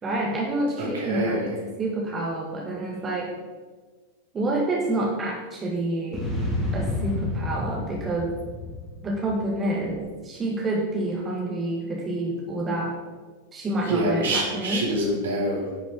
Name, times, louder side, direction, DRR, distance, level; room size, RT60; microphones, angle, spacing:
voice 1, 0.0-3.3 4.3-6.2 6.7-8.3 9.0-12.9 13.5-14.9, right 1 dB, 20° right, -2 dB, 1.6 m, -28 dB
voice 2, 0.8-1.5 13.9-15.8, right 1 dB, 65° right, -3 dB, 3.0 m, -26 dB
sound 1, 6.1-9.6, left 2 dB, 10° left, 3.0 m, -30 dB
10.5 x 6.0 x 5.0 m, 1.4 s
figure-of-eight pair, 90°, 0 cm